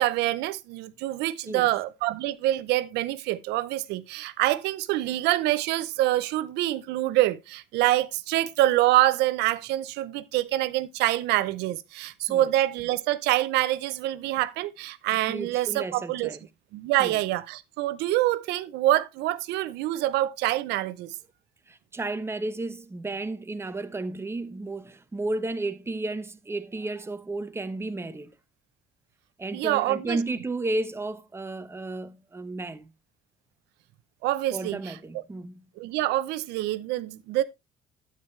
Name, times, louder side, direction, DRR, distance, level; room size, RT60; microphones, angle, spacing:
voice 1, 0.0-16.3 16.7-21.1 29.5-30.2 34.2-35.0 35.8-37.4, right 15 dB, 90° right, 0.7 m, -26 dB
voice 2, 15.3-16.4 17.0-17.2 21.7-28.3 29.4-32.9 34.5-35.6, right 2 dB, 15° right, 0.9 m, -33 dB
9.5 x 9.0 x 3.2 m
cardioid pair, 110°, 17 cm